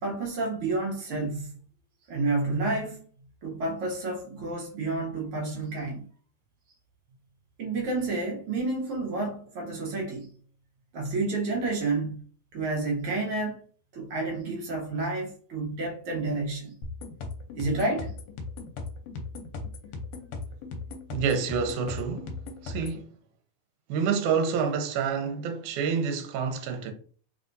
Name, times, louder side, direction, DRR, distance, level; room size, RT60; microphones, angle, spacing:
voice 1, 0.0-1.5 2.1-3.0 3.4-6.1 7.6-10.3 10.9-12.1 12.5-13.6 13.9-16.8 17.5-18.1, right 3 dB, 65° right, 1.4 m, -30 dB
sound 1, 16.8-23.0, left 3 dB, 75° left, 1.7 m, -38 dB
voice 2, 21.1-22.3 22.6-23.1 23.9-26.9, right 6 dB, 85° right, 2.1 m, -28 dB
4.1 x 3.5 x 2.5 m
omnidirectional pair, 3.4 m